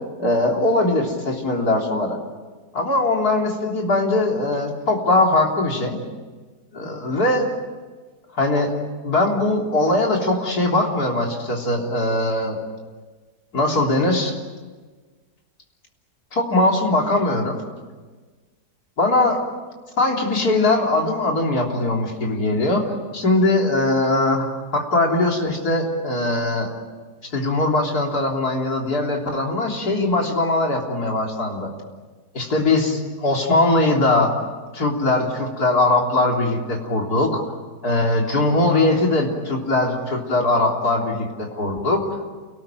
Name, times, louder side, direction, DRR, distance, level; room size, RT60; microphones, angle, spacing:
voice 1, 0.2-2.2 2.7-6.0 6.7-7.5 8.4-8.7 9.0-12.6 13.5-14.4 16.3-17.6 19.0-19.4 20.0-26.7 27.3-31.7 32.3-34.3 34.7-37.4 37.8-42.2, left 2 dB, 65° left, 0 dB, 4.0 m, -21 dB
29.0 x 19.0 x 9.2 m, 1.4 s
omnidirectional pair, 1.7 m